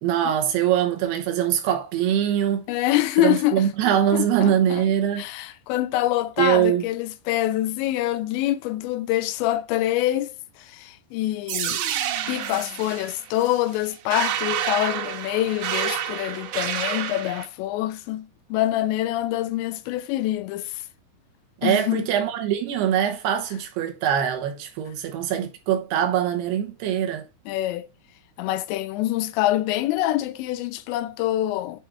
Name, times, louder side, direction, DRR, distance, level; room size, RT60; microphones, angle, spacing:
voice 1, 0.0-2.7 3.2-5.3 6.4-6.9 21.6-27.3, right 10 dB, 75° right, 2.9 m, -23 dB
voice 2, 2.7-3.7 4.1-4.8 5.2-11.8 12.3-20.8 21.6-22.1 27.5-27.9 28.4-31.8, left 14 dB, 85° left, 2.9 m, -25 dB
sound 1, 11.5-17.5, right 10 dB, 90° right, 3.3 m, -29 dB
10.0 x 4.6 x 3.4 m
omnidirectional pair, 5.1 m